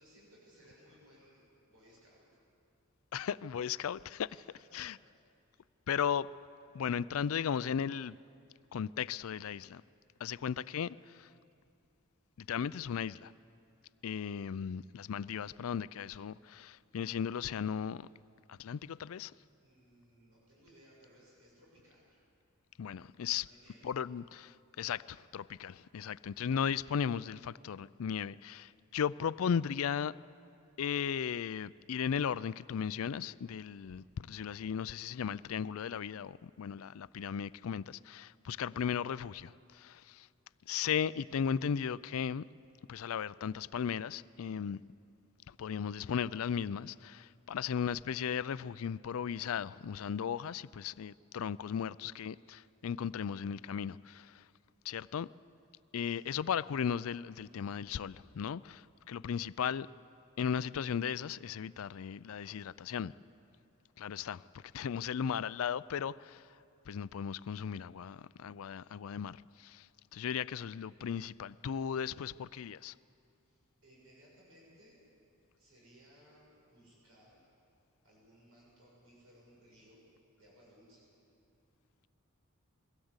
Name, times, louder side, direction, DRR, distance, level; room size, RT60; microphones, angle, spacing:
voice 1, 0.0-2.3 4.5-5.2 19.6-22.2 23.4-23.9 56.0-56.4 73.4-75.0 75.6-77.4 78.0-80.0 80.4-81.1, equal, 80° right, 6.9 m, -62 dB
voice 2, 3.1-4.3 4.7-5.0 5.9-6.3 6.7-8.2 8.7-9.8 10.2-11.3 12.4-13.3 14.0-18.1 18.5-19.3 22.8-23.5 23.8-30.2 30.8-40.3 40.7-42.4 42.9-44.8 45.5-54.5 54.8-55.3 55.9-59.9 60.4-63.1 64.0-66.6 66.9-72.9, left 7 dB, 75° left, 0.4 m, -36 dB
22.0 x 17.0 x 8.1 m
head